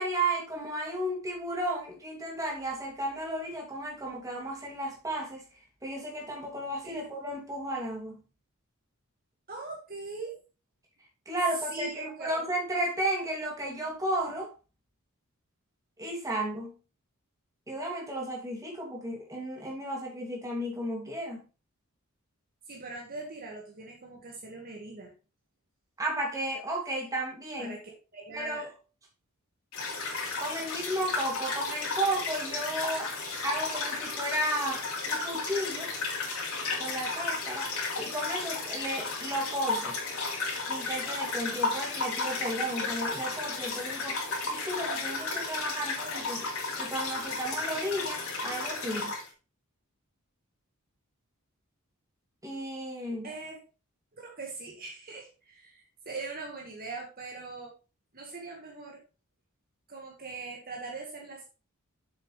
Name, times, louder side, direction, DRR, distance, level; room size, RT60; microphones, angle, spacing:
voice 1, 0.0-5.5 5.8-8.2 11.3-14.5 16.0-16.7 17.7-21.4 26.0-27.8 28.3-28.7 30.4-33.1 33.4-35.9 36.8-37.7 38.0-40.0 40.7-46.5 46.8-49.2 52.4-53.3, right 1 dB, 15° right, -1 dB, 2.6 m, -33 dB
voice 2, 6.8-7.3 9.5-10.3 11.5-12.4 22.7-25.1 27.6-28.7 53.2-53.6 54.2-57.7 58.1-59.0 59.9-61.4, right 3 dB, 45° right, 0 dB, 1.8 m, -41 dB
sound 1, 29.7-49.3, left 3 dB, 75° left, 3.3 m, -33 dB
7.4 x 7.0 x 3.3 m, 0.33 s
head